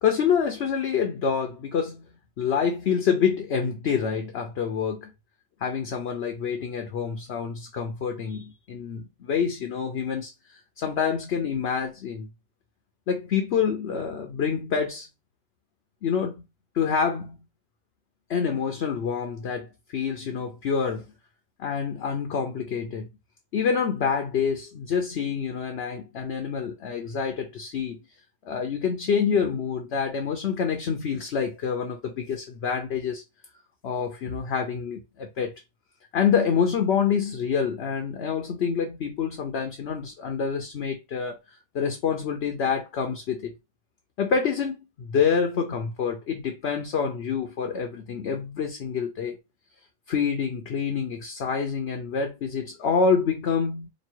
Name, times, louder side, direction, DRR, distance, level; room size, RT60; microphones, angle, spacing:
voice 1, 0.0-2.0 2.4-5.1 5.6-10.3 10.8-12.3 13.1-15.1 16.0-16.4 16.7-17.4 18.3-21.0 21.6-23.1 23.5-28.0 28.4-33.2 33.8-35.5 36.1-41.4 41.7-43.5 44.2-49.4 50.1-53.9, left 6 dB, 55° left, 0.8 m, -27 dB
3.1 x 2.6 x 4.5 m
omnidirectional pair, 1.5 m